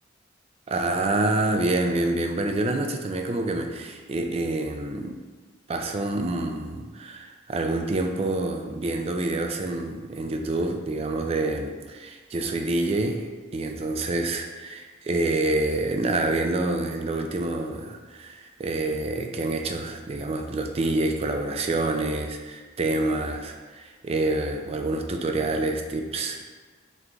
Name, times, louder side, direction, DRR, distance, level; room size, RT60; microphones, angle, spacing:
voice 1, 0.7-5.2 5.7-26.5, right 2 dB, 30° right, 4 dB, 0.4 m, -27 dB
3.8 x 3.2 x 3.4 m, 1.4 s
head